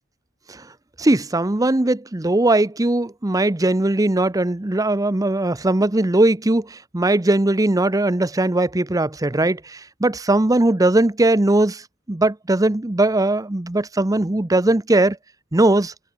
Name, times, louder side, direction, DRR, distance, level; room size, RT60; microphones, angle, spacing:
voice 1, 1.0-11.8 12.1-15.2 15.5-15.9, right 2 dB, 20° right, 0.7 m, -19 dB
head